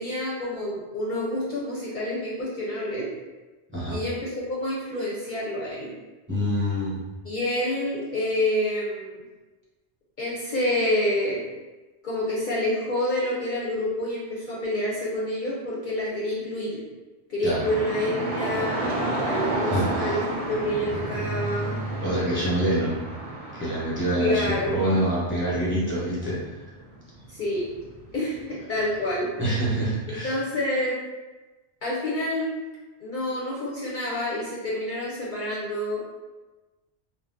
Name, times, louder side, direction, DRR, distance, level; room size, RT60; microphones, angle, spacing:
voice 1, 0.0-3.1 3.9-5.9 7.2-9.2 10.2-11.4 12.0-16.8 17.3-20.2 20.5-21.8 24.2-24.8 27.3-27.7 28.1-29.3 30.1-31.0 31.8-32.5 33.0-36.0, left 1 dB, 55° left, -6 dB, 0.7 m, -28 dB
voice 2, 6.3-7.0 17.4-17.6 19.6-20.2 22.0-23.0 23.5-26.5 29.4-30.4, right 1 dB, 15° right, -8 dB, 0.7 m, -26 dB
sound 1, 17.6-28.4 28.8-29.3, right 2 dB, 45° right, 0.5 m, -31 dB
2.6 x 2.0 x 3.5 m, 1.2 s
omnidirectional pair, 1.1 m